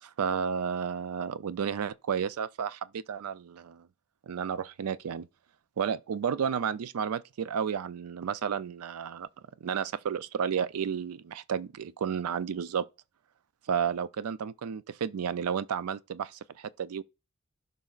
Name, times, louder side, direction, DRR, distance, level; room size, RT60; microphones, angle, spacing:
voice 1, 0.0-3.9 4.3-5.3 5.8-9.3 9.6-12.9 13.7-17.0, right 7 dB, 85° right, 0.4 m, -32 dB
15.5 x 5.3 x 2.4 m
head